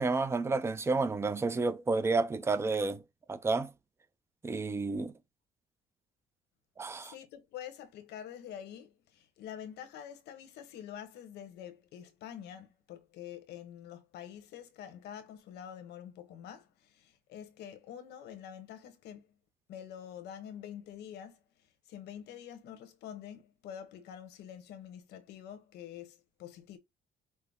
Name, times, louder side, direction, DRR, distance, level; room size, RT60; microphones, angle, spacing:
voice 1, 0.0-3.0 3.3-3.7 4.4-5.1 6.8-7.1, right 3 dB, 15° right, 0.5 m, -30 dB
voice 2, 7.0-19.3 19.7-26.8, left 9 dB, 80° left, 1.1 m, -47 dB
5.7 x 2.1 x 3.5 m
cardioid pair, 110°, 17 cm